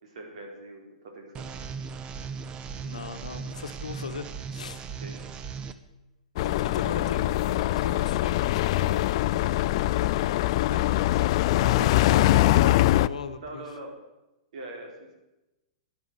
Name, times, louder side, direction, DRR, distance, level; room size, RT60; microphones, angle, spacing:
voice 1, 0.0-1.5 5.0-5.3 10.6-12.5 13.4-13.9 14.5-14.9, right 2 dB, 65° right, 2 dB, 4.0 m, -41 dB
sound 1, 1.3-5.7, right 5 dB, 25° right, 0.8 m, -37 dB
voice 2, 2.8-4.8 6.4-9.4 12.9-13.6, left 5 dB, 80° left, 9 dB, 1.1 m, -38 dB
sound 2, 6.4-13.1, left 16 dB, 50° left, 0.4 m, -23 dB
11.5 x 10.5 x 6.8 m, 1.0 s
hypercardioid pair, 115°, 4 cm